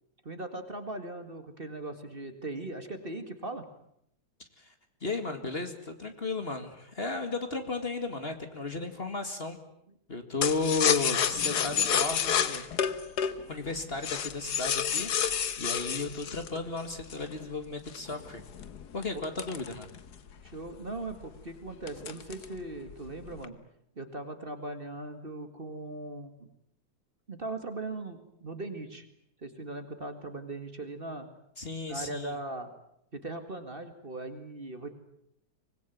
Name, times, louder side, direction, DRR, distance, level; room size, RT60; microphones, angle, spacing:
voice 1, 0.2-3.7 19.1-19.3 20.4-23.6 24.0-26.3 27.3-29.0 29.4-31.3 31.9-32.7 33.1-34.9, right 2 dB, 35° right, 8 dB, 2.2 m, -39 dB
voice 2, 5.0-9.6 10.1-12.7 13.5-15.1 15.6-18.4 18.9-19.9 31.6-32.4, left 3 dB, 35° left, 7 dB, 2.3 m, -34 dB
sound 1, 10.4-17.3 17.9-20.3 20.7-20.8 21.1-21.4 21.9-22.6 22.9-23.5, left 8 dB, 75° left, 1.8 m, -29 dB
25.0 x 20.0 x 9.3 m, 0.75 s
omnidirectional pair, 1.8 m